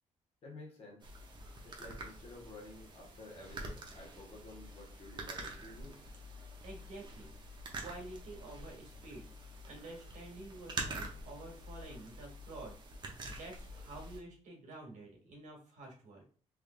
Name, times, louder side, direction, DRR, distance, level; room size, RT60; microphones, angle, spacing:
voice 1, 0.4-1.1 1.6-6.0, left 2 dB, 55° left, -2 dB, 1.5 m, -52 dB
sound 1, 1.0-14.2, right 2 dB, 35° right, 0.8 m, -46 dB
voice 2, 6.6-7.3 7.8-9.3 9.7-16.2, right 2 dB, 85° right, 0 dB, 1.6 m, -49 dB
3.6 x 3.3 x 2.5 m, 0.42 s
cardioid pair, 145°, 12 cm